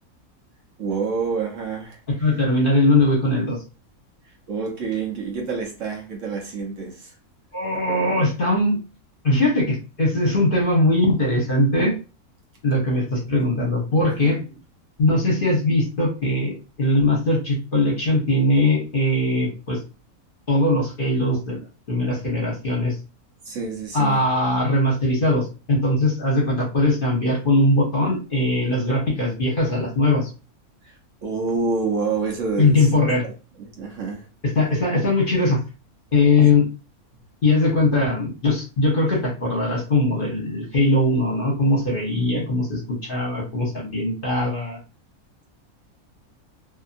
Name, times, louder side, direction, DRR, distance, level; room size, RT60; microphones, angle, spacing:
voice 1, 0.8-2.0 4.2-7.1 14.2-14.3 23.4-24.3 30.8-31.0 31.2-33.1 33.6-34.3 42.3-42.5, right 4 dB, 60° right, 1.1 m, -28 dB
voice 2, 2.1-3.6 7.5-8.8 9.2-11.9 12.6-14.4 15.0-19.8 20.5-22.9 23.9-30.3 32.6-33.2 34.5-35.6 36.1-36.7 37.4-44.8, left 2 dB, 40° left, 1.1 m, -20 dB
2.7 x 2.7 x 2.5 m
omnidirectional pair, 1.6 m